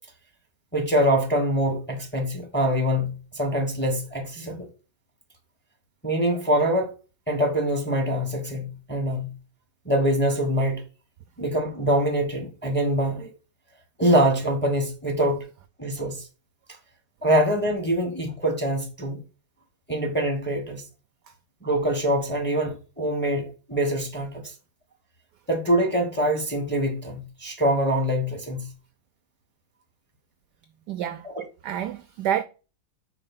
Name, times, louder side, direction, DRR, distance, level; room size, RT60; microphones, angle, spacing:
voice 1, 0.7-4.7 6.0-6.9 7.3-9.3 9.8-10.8 11.4-13.3 14.0-15.4 15.8-16.3 17.2-19.2 19.9-20.8 21.6-24.5 25.5-28.7 31.2-31.4, right 1 dB, 5° left, 1.0 m, -24 dB
voice 2, 30.9-31.3 31.6-32.4, right 10 dB, 75° right, 0.9 m, -28 dB
4.9 x 4.9 x 5.3 m
omnidirectional pair, 2.2 m